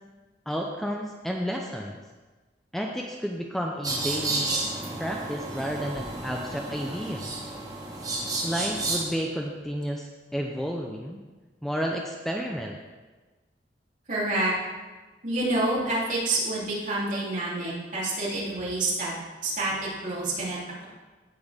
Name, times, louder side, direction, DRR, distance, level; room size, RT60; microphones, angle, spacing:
voice 1, 0.5-2.0 2.7-4.6 5.0-7.3 8.4-11.2 11.6-12.8, equal, ahead, 0 dB, 0.6 m, -31 dB
sound 1, 3.8-9.0, right 2 dB, 20° right, 1.5 m, -31 dB
voice 2, 14.1-14.5 15.2-19.1 19.4-20.8, right 2 dB, 45° right, -7 dB, 3.4 m, -28 dB
17.0 x 6.0 x 3.7 m, 1.3 s
head